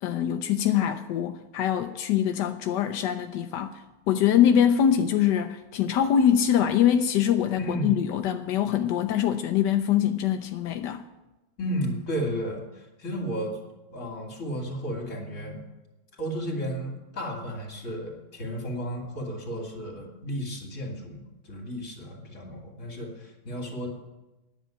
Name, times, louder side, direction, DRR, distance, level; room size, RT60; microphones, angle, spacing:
voice 1, 0.0-11.0, left 9 dB, 75° left, 1.0 m, -24 dB
voice 2, 7.6-7.9 11.6-13.6 13.9-15.7 16.2-23.9, equal, 35° left, 2.8 m, -33 dB
10.5 x 7.1 x 9.2 m
omnidirectional pair, 2.4 m